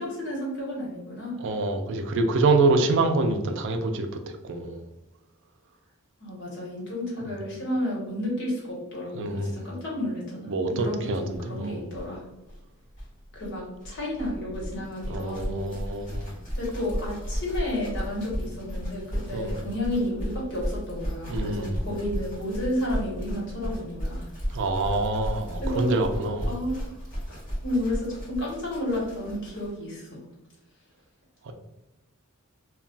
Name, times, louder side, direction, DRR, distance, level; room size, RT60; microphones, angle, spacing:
voice 1, 0.0-1.4 6.2-12.2 13.3-15.7 16.6-24.3 25.6-25.9 26.5-26.8 27.6-30.2, left 1 dB, 60° left, -4 dB, 1.2 m, -31 dB
voice 2, 1.4-4.8 9.1-9.6 10.5-11.8 15.1-16.4 19.3-19.5 21.3-21.8 24.5-26.6 31.4-31.5, right 3 dB, 60° right, 6 dB, 0.4 m, -26 dB
sound 1, 11.3-11.4 11.6-11.7 11.9-29.8, equal, 40° left, 1.2 m, -34 dB
2.2 x 2.2 x 3.7 m, 1.0 s
head